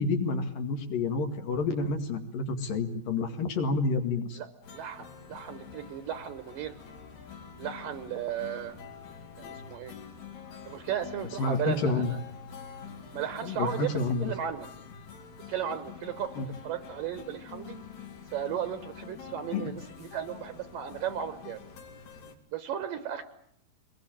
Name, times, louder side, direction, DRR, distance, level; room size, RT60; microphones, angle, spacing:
voice 1, 0.0-4.4 11.4-12.1 13.4-14.3 16.4-16.5 19.5-19.7, left 3 dB, 65° left, 5 dB, 3.5 m, -29 dB
voice 2, 4.3-6.7 7.6-8.8 9.4-10.0 10.6-12.2 13.1-14.7 15.5-17.8 18.3-21.6 22.5-23.2, right 9 dB, 70° right, 9 dB, 2.6 m, -35 dB
sound 1, 4.6-22.4, left 6 dB, 80° left, 4.8 m, -46 dB
24.0 x 21.5 x 8.9 m, 0.70 s
omnidirectional pair, 4.5 m